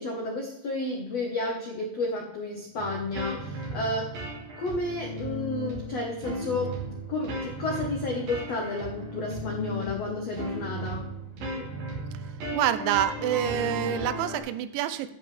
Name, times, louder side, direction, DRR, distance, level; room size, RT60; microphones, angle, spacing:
voice 1, 0.0-4.2 4.6-6.8 7.1-11.1, left 2 dB, 75° left, 0 dB, 1.4 m, -31 dB
sound 1, 2.8-14.4, right 1 dB, 55° right, 4.1 m, -35 dB
voice 2, 12.5-15.1, right 11 dB, 85° right, 12 dB, 3.0 m, -27 dB
11.0 x 9.2 x 3.4 m, 0.81 s
omnidirectional pair, 5.3 m